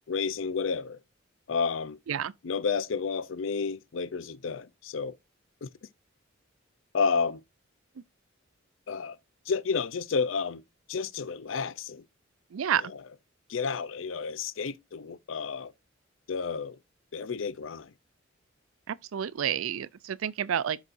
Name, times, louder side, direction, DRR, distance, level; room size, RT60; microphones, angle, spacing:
voice 1, 0.1-1.0 1.5-2.0 2.4-5.1 5.6-5.7 6.9-7.4 8.9-9.2 9.5-10.6 10.9-12.0 12.9-13.0 13.5-15.7 16.3-16.8 17.1-17.9, left 5 dB, 70° left, 0.5 m, -31 dB
voice 2, 12.5-12.8 18.9-20.8, right 9 dB, 90° right, 0.4 m, -29 dB
12.0 x 4.1 x 2.5 m
head